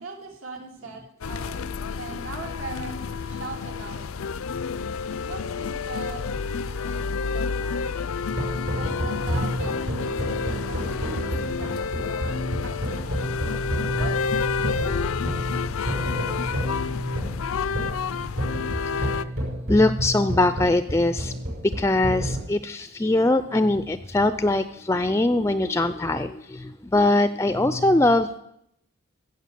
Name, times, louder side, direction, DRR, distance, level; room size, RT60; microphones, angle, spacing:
voice 1, 0.0-1.6 2.0-4.4 5.1-8.2 8.8-13.3 14.0-15.4, right 3 dB, 75° right, 1 dB, 2.8 m, -41 dB
sound 1, 1.2-19.3, left 5 dB, 85° left, 0.5 m, -29 dB
sound 2, 8.3-22.4, equal, 55° right, 6.1 m, -30 dB
voice 2, 19.7-21.3 21.6-28.4, left 2 dB, 15° left, 12 dB, 0.4 m, -22 dB
15.5 x 8.1 x 6.8 m, 0.77 s
head